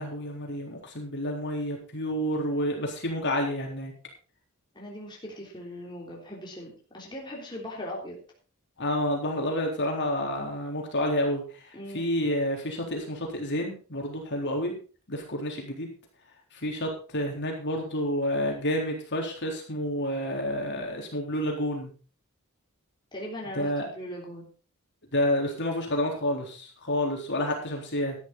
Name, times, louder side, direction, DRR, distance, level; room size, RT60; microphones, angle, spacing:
voice 1, 0.0-3.9 8.8-11.4 11.9-14.7 15.1-15.9 16.6-21.9 23.6-23.9 25.1-28.2, left 1 dB, 55° left, 1 dB, 3.8 m, -29 dB
voice 2, 4.8-8.2 11.7-12.2 23.1-24.5, equal, 20° left, -3 dB, 3.4 m, -39 dB
12.5 x 11.5 x 4.1 m, 0.37 s
head